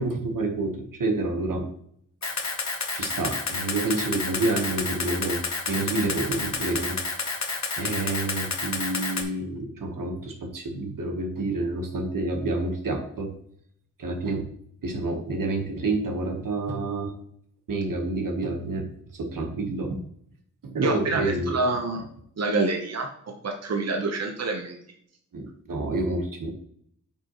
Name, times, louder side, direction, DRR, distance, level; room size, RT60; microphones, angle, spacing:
voice 1, 0.0-1.7 2.9-7.0 7.8-13.3 14.0-14.5 14.8-17.1 17.7-20.0 20.6-21.6 25.3-26.5, right 2 dB, 75° right, 4 dB, 1.4 m, -28 dB
Camera, 2.2-9.2, left 4 dB, 55° left, 1.2 m, -30 dB
voice 2, 20.8-22.0 22.4-23.1 23.4-24.8, right 3 dB, 50° right, 3 dB, 1.0 m, -26 dB
8.7 x 5.4 x 3.0 m, 0.66 s
wide cardioid pair, 80°, 33 cm